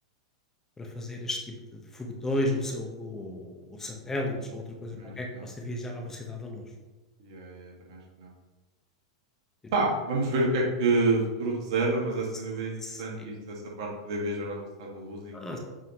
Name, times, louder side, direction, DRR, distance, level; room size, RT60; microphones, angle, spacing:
voice 1, 0.8-1.4 1.9-6.6 12.8-13.3 15.3-15.6, left 1 dB, 15° left, 1 dB, 1.1 m, -34 dB
voice 2, 5.0-5.4 7.2-8.3 9.7-15.3, right 2 dB, 55° right, -2 dB, 1.9 m, -29 dB
7.1 x 5.5 x 3.1 m, 1.2 s
figure-of-eight pair, 95°, 3 cm